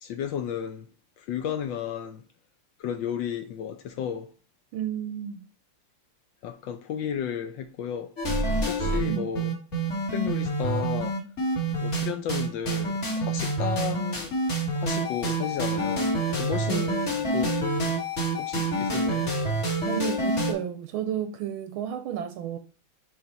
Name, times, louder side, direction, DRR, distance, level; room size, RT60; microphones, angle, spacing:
voice 1, 0.0-0.9 1.2-2.2 2.8-4.3 6.4-8.1 8.7-9.5 10.1-11.2 11.8-14.4 14.7-17.6 18.4-19.3, left 8 dB, 75° left, 1.2 m, -33 dB
voice 2, 4.7-5.5 9.1-9.4 16.7-17.0 19.9-22.6, right 9 dB, 80° right, 1.4 m, -32 dB
sound 1, 8.2-20.5, right 2 dB, 35° left, 1.9 m, -27 dB
6.9 x 3.3 x 4.1 m
omnidirectional pair, 2.4 m